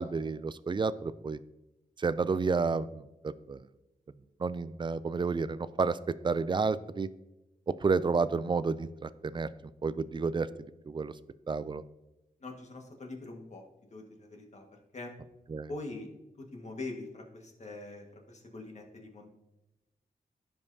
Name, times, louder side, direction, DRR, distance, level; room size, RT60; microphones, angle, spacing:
voice 1, 0.0-1.4 2.0-3.6 4.4-7.1 7.8-9.5 9.8-10.5 10.9-11.1 11.5-11.8 15.5-15.7, right 4 dB, 30° right, 16 dB, 0.3 m, -30 dB
voice 2, 12.4-13.6 13.9-14.6 14.9-15.1 15.7-16.1 16.4-19.3, left 2 dB, 50° left, 1 dB, 1.6 m, -43 dB
15.0 x 5.4 x 2.7 m, 0.97 s
wide cardioid pair, 120°, 15 cm